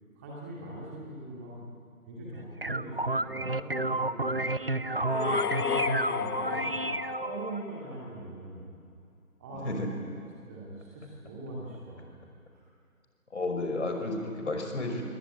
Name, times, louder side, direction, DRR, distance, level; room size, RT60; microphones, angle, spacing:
voice 1, 0.1-1.6 2.1-6.8 7.2-8.7 9.4-10.0 10.5-12.0 12.5-12.6, right 1 dB, 10° right, -5 dB, 2.4 m, -42 dB
sound 1, 2.3-7.6, right 2 dB, 40° right, 0.6 m, -31 dB
sound 2, 5.0-8.0, left 7 dB, 80° left, 0.6 m, -33 dB
voice 2, 6.5-6.8 9.5-9.9 13.3-15.0, left 2 dB, 50° left, 3 dB, 5.6 m, -32 dB
28.0 x 23.0 x 9.2 m, 2.3 s
figure-of-eight pair, 160°, 45 cm